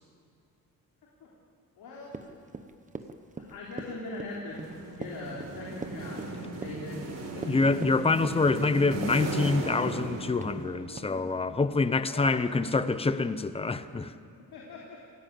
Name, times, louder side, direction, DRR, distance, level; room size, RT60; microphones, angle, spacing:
voice 1, 1.8-2.3 3.4-7.7 10.7-10.8 12.0-12.4 14.5-15.0, left 2 dB, 90° left, -3 dB, 3.7 m, -41 dB
Run, 2.1-9.2 9.4-10.0 10.4-10.6 11.0-11.1, right 4 dB, 20° right, 1.0 m, -41 dB
sound 1, 4.5-11.0, right 2 dB, 45° right, 4.6 m, -37 dB
voice 2, 7.3-14.1, left 3 dB, 15° left, 12 dB, 0.7 m, -26 dB
28.0 x 17.0 x 7.7 m, 2.2 s
wide cardioid pair, 170°, 35 cm